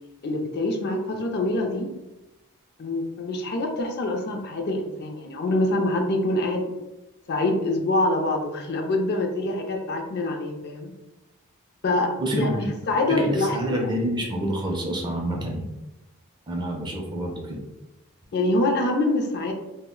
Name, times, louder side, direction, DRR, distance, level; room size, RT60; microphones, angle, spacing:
voice 1, 0.2-1.9 2.8-6.7 7.3-10.9 11.8-13.8 18.3-19.5, left 2 dB, 50° left, 3 dB, 0.4 m, -25 dB
voice 2, 12.2-15.7 16.5-17.6, right 1 dB, 20° right, 0 dB, 0.4 m, -28 dB
2.3 x 2.1 x 3.6 m, 0.99 s
head